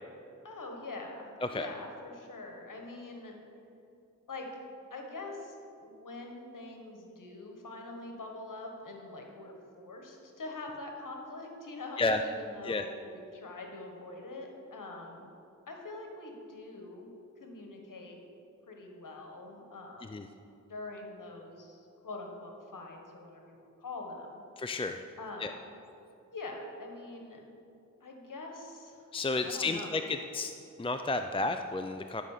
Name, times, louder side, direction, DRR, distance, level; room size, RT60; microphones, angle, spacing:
voice 1, 0.4-3.4 4.3-4.5 4.9-15.3 15.7-17.1 17.4-18.2 18.7-20.3 20.7-24.4 25.2-25.6 26.3-27.4 28.0-29.1 29.4-30.0, left 2 dB, 80° left, 2 dB, 1.5 m, -44 dB
voice 2, 24.6-25.0 25.4-25.5 29.1-30.5 30.8-32.2, left 3 dB, 15° left, 7 dB, 0.5 m, -32 dB
12.0 x 5.5 x 6.6 m, 2.6 s
cardioid pair, 45°, 32 cm